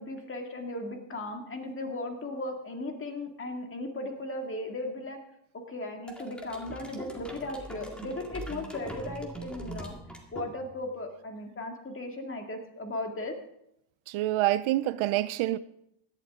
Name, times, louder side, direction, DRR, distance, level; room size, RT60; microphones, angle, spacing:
voice 1, 0.0-5.2 5.7-9.9 10.3-13.3, left 2 dB, 25° left, 2.2 m, -36 dB
sound 1, 6.1-10.9, right 1 dB, ahead, 2.0 m, -42 dB
voice 2, 14.1-15.6, right 15 dB, 80° right, 0.7 m, -27 dB
16.5 x 11.5 x 3.7 m
cardioid pair, 120°, 47 cm